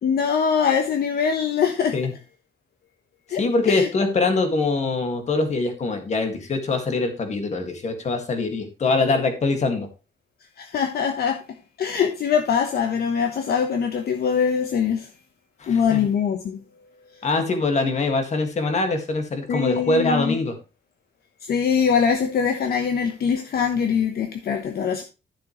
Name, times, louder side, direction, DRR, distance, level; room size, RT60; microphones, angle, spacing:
voice 1, 0.0-2.0 3.3-3.9 10.6-11.4 11.8-15.1 15.6-16.6 17.1-17.2 19.5-20.4 21.4-25.0, left 7 dB, 60° left, 1.0 m, -23 dB
voice 2, 3.3-9.9 15.6-16.1 17.2-20.5, left 3 dB, 40° left, 1.9 m, -23 dB
12.0 x 6.9 x 3.1 m
wide cardioid pair, 165°, 18 cm